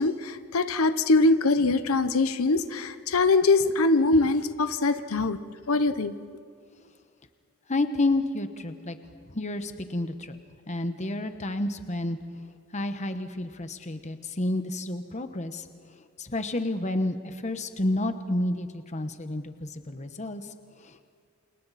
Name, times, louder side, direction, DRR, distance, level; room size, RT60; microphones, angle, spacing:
voice 1, 0.0-5.4 5.7-6.1, left 3 dB, 70° left, 11 dB, 0.9 m, -23 dB
voice 2, 7.7-9.0 9.3-10.4 10.7-12.2 12.7-15.7 16.2-20.5 20.8-21.0, left 2 dB, 30° left, 8 dB, 1.1 m, -30 dB
29.0 x 28.5 x 4.2 m, 2.2 s
head